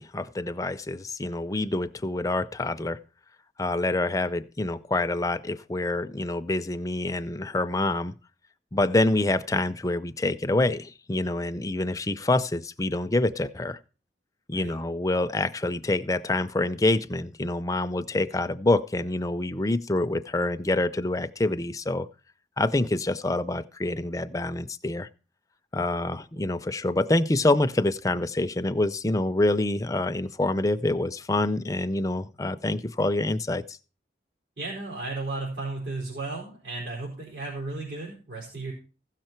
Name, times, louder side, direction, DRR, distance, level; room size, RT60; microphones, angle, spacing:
voice 1, 0.0-3.0 3.6-8.1 8.7-13.8 14.5-22.1 22.6-25.1 25.7-33.8, left 2 dB, 20° left, 11 dB, 0.5 m, -26 dB
voice 2, 34.6-38.7, right 2 dB, 85° right, -3 dB, 4.5 m, -34 dB
15.5 x 6.6 x 4.5 m, 0.36 s
head